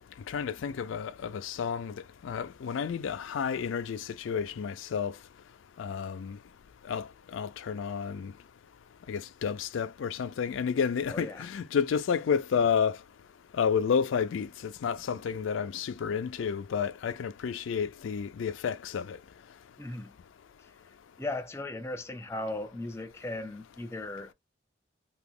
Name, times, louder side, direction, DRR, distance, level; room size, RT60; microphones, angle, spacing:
voice 1, 0.3-1.9 2.2-5.1 5.8-6.4 6.9-7.1 7.3-8.3 9.1-13.0 13.6-19.2, left 6 dB, 80° left, 0.4 m, -30 dB
voice 2, 11.1-11.5 19.8-20.1 21.2-24.3, left 2 dB, 15° left, 0.4 m, -37 dB
2.9 x 2.3 x 3.5 m
head